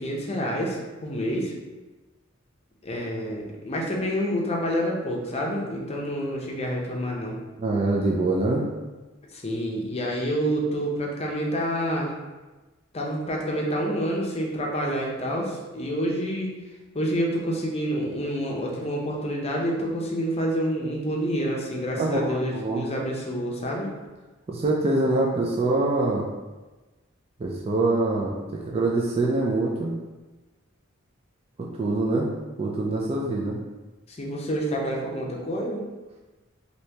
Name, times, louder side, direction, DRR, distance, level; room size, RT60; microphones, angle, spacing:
voice 1, 0.0-1.5 2.8-7.4 9.3-12.1 12.9-16.5 16.9-23.9 34.1-35.8, equal, 30° left, -1 dB, 0.6 m, -28 dB
voice 2, 7.6-8.6 22.0-22.9 24.5-26.3 27.4-28.4 28.7-29.9 31.6-32.3 32.6-33.6, right 2 dB, 30° right, -3 dB, 0.3 m, -24 dB
2.9 x 2.7 x 3.3 m, 1.2 s
head